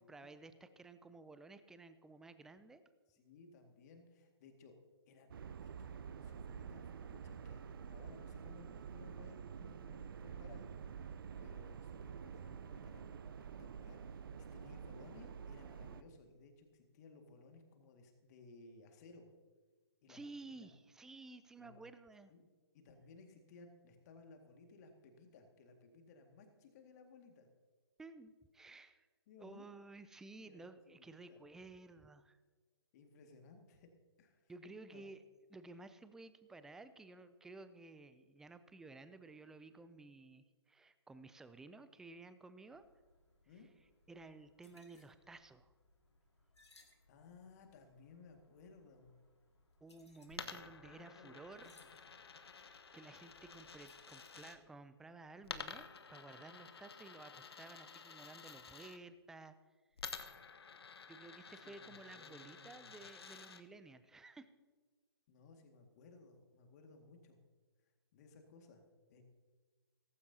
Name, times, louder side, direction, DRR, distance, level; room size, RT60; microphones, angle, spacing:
voice 1, 0.0-2.8 20.1-22.3 28.0-29.1 29.4-32.4 34.5-35.2 35.5-42.9 44.1-45.7 49.8-51.7 52.5-59.6 60.0-60.1 61.1-64.5, right 3 dB, 5° right, 12 dB, 0.4 m, -55 dB
voice 2, 3.1-4.8 5.1-5.5 5.8-13.3 13.6-19.3 20.0-20.2 20.5-20.7 21.6-21.8 22.3-22.4 22.7-27.5 29.3-29.7 30.4-31.4 32.9-33.9 34.2-34.5 34.9-35.0 43.5-43.7 47.1-49.2 50.4-52.0 61.6-63.0 65.3-67.4 68.1-69.2, left 4 dB, 40° left, 4 dB, 2.0 m, -60 dB
sound 1, 5.3-16.0, right 7 dB, 55° right, 0.6 m, -49 dB
sound 2, 42.7-54.6, left 2 dB, 85° left, 2.0 m, -70 dB
Coin (dropping), 50.3-54.6 55.4-59.0 60.0-63.6, left 5 dB, 65° left, 1.0 m, -51 dB
16.5 x 15.0 x 2.8 m, 1.4 s
figure-of-eight pair, 130°, 14 cm